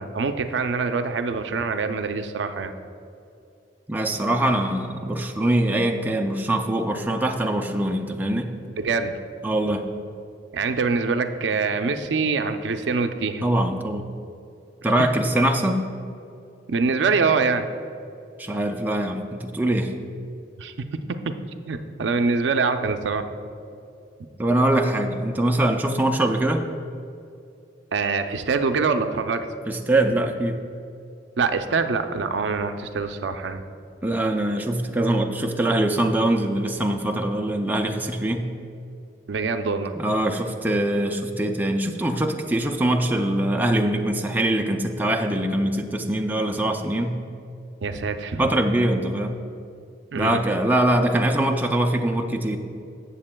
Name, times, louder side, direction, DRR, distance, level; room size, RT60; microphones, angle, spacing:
voice 1, 0.0-2.7 8.8-9.2 10.5-13.4 16.7-17.7 20.6-20.9 21.3-21.4 21.7-23.3 27.9-29.5 31.4-33.6 39.3-39.9 47.8-48.5 50.1-50.4, right 4 dB, 65° right, 8 dB, 0.5 m, -24 dB
voice 2, 3.9-8.5 9.4-9.9 13.4-14.0 14.8-15.8 18.4-19.9 24.4-26.7 29.7-30.6 34.0-38.5 40.0-47.2 48.4-49.4 50.2-52.6, right 1 dB, 10° right, 3 dB, 0.4 m, -23 dB
16.0 x 6.9 x 2.2 m, 2.6 s
head